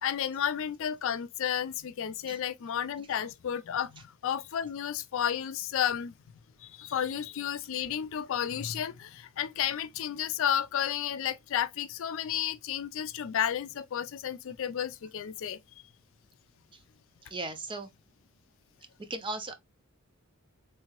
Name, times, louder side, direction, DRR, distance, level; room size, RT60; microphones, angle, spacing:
voice 1, 0.0-6.1 6.6-15.6, left 9 dB, 70° left, 0.4 m, -32 dB
voice 2, 17.2-17.9 19.0-19.5, right 2 dB, 25° right, 0.6 m, -37 dB
3.3 x 2.8 x 2.9 m
head